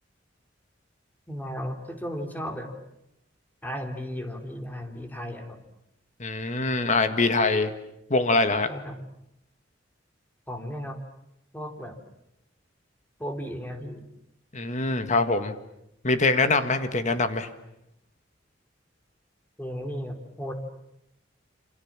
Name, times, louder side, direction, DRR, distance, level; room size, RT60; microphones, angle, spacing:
voice 1, 1.3-2.7 3.6-5.6 8.7-9.0 10.5-11.0 11.5-11.9 13.2-14.0 19.6-20.5, equal, 10° left, 4 dB, 3.4 m, -35 dB
voice 2, 6.2-7.7 8.1-8.7 14.5-15.5 16.0-17.5, left 3 dB, 40° left, 9 dB, 1.8 m, -23 dB
28.5 x 27.0 x 7.5 m, 0.83 s
head